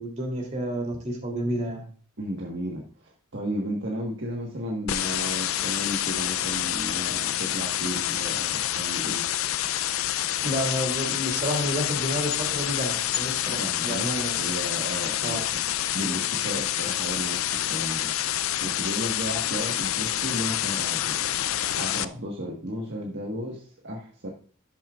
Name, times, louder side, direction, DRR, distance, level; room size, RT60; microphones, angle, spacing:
voice 1, 0.0-1.8 10.4-14.4 15.2-15.5, equal, 35° right, 2 dB, 3.1 m, -30 dB
voice 2, 2.2-9.3 13.6-14.1 14.4-15.4 15.9-18.1 18.6-21.2 21.7-24.3, equal, 55° right, -1 dB, 1.5 m, -34 dB
sound 1, 4.9-22.0, left 12 dB, 75° left, 0.5 m, -28 dB
12.0 x 7.4 x 2.5 m, 0.42 s
head